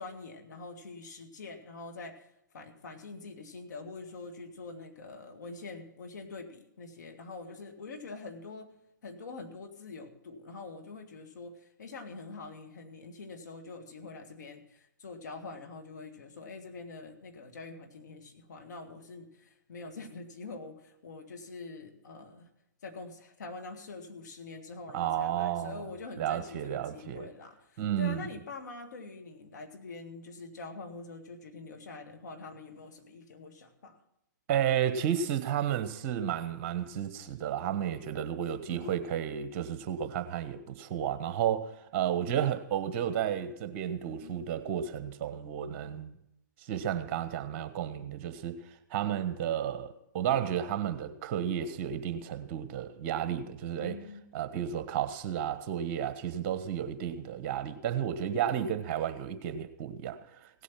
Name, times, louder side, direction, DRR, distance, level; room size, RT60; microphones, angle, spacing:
voice 1, 0.0-8.7 9.0-22.5 22.8-34.0 38.7-39.0 44.1-44.5 53.8-54.2, left 3 dB, 65° left, 2.2 m, -45 dB
voice 2, 24.9-27.3 27.8-28.3 34.5-46.1 46.6-54.0 54.3-60.6, right 9 dB, 40° right, 1.2 m, -32 dB
17.0 x 8.3 x 6.0 m
figure-of-eight pair, 125°, 10 cm